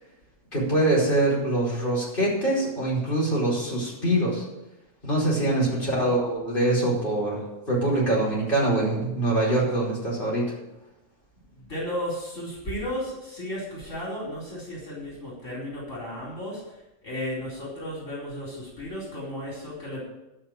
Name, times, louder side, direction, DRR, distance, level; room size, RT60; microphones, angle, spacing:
voice 1, 0.5-4.5 5.0-10.5, right 1 dB, 40° left, -6 dB, 5.2 m, -24 dB
voice 2, 5.7-6.1 11.5-16.8 17.0-20.0, equal, 75° left, -6 dB, 4.7 m, -34 dB
12.5 x 6.3 x 9.0 m, 0.96 s
omnidirectional pair, 1.3 m